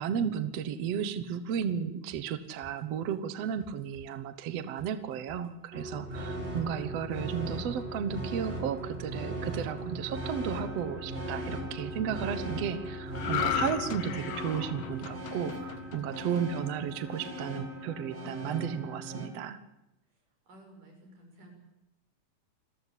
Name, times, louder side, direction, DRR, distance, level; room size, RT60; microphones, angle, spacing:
voice 1, 0.0-19.6, right 8 dB, 60° right, 11 dB, 2.1 m, -34 dB
sound 1, 2.1-12.2 12.4-12.5, equal, 10° left, 3.4 m, -58 dB
sound 2, 5.7-19.3, right 1 dB, 20° right, 2.6 m, -38 dB
sound 3, 13.1-16.6 17.0-17.3, left 9 dB, 60° left, 1.3 m, -35 dB
voice 2, 20.1-21.5, right 1 dB, 90° right, 2 dB, 8.0 m, -55 dB
28.0 x 14.5 x 8.4 m, 0.91 s
omnidirectional pair, 3.6 m